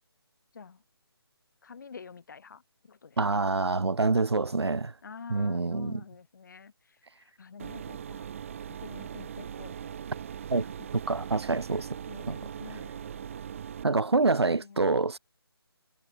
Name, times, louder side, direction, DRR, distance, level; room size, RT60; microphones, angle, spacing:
voice 1, 1.6-3.2 5.0-8.3 8.8-9.8 10.5-11.0 11.8-13.4 14.3-14.8, left 5 dB, 50° left, 6.0 m, -48 dB
voice 2, 3.2-4.9 5.3-6.0 10.5-10.6 11.1-12.0 12.3-12.4 13.8-15.2, right 3 dB, 80° right, 0.7 m, -26 dB
sound 1, 7.6-13.8, right 8 dB, 30° right, 0.9 m, -40 dB
figure-of-eight pair, 150°, 13 cm